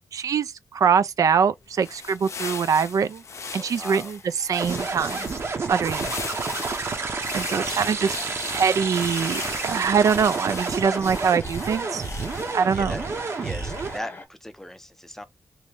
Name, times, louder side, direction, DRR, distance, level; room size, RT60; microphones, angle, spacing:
voice 1, 0.1-3.2 3.5-4.2 4.5-5.3 5.7-6.1 7.3-8.1 8.5-12.0 12.5-12.9, right 6 dB, 80° right, 0.4 m, -23 dB
sound 1, 1.6-12.7, left 5 dB, 55° left, 0.5 m, -38 dB
sound 2, 3.2-14.3, left 3 dB, 35° left, 1.0 m, -43 dB
voice 2, 3.6-4.1 7.5-7.8 12.7-13.0 13.4-15.2, left 1 dB, 5° left, 0.5 m, -38 dB
sound 3, 4.5-14.0, right 4 dB, 50° right, 0.7 m, -30 dB
3.0 x 2.6 x 3.4 m
wide cardioid pair, 140°, 6 cm